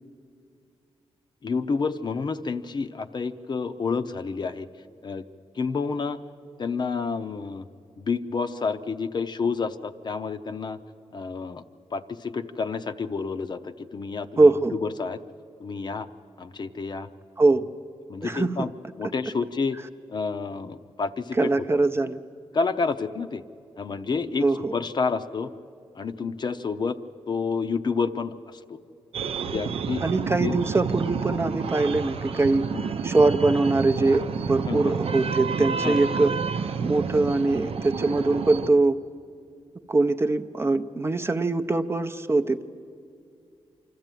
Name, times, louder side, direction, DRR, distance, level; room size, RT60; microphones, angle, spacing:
voice 1, 1.4-4.7 5.0-5.2 5.6-6.2 6.6-7.6 8.0-10.8 11.1-11.6 11.9-15.2 15.6-16.1 16.4-17.1 18.1-18.7 19.0-19.8 20.1-22.1 22.5-23.4 23.8-24.4 24.7-25.5 25.9-27.0 27.3-28.8 29.4-30.0 30.4-30.5 32.7-32.8 34.7-34.9 35.8-36.0, left 4 dB, 40° left, 9 dB, 0.7 m, -29 dB
voice 2, 14.4-14.8 17.4-17.6 18.2-18.7 21.4-22.2 24.4-24.7 30.0-32.7 33.0-36.3 36.8-39.0 39.9-42.6, right 3 dB, 25° right, 7 dB, 0.6 m, -22 dB
sound 1, 29.1-38.7, right 5 dB, 60° right, 0.7 m, -30 dB
25.0 x 13.5 x 9.1 m, 2.4 s
wide cardioid pair, 120°, 11 cm